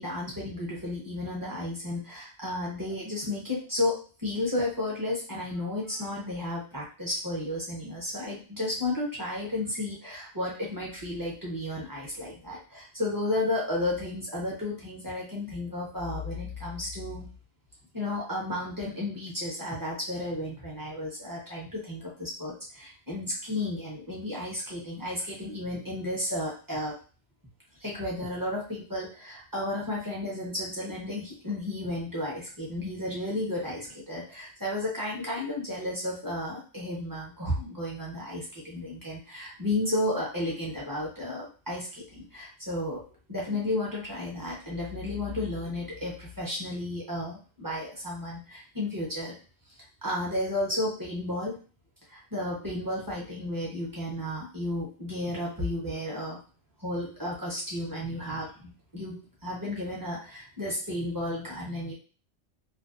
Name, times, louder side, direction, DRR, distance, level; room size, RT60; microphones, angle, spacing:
voice 1, 0.0-4.0 4.2-17.3 17.9-26.9 27.8-43.0 43.3-49.3 50.0-51.6 52.1-56.4 56.8-61.9, left 1 dB, 20° right, -5 dB, 0.7 m, -33 dB
2.5 x 2.2 x 2.4 m, 0.36 s
omnidirectional pair, 1.3 m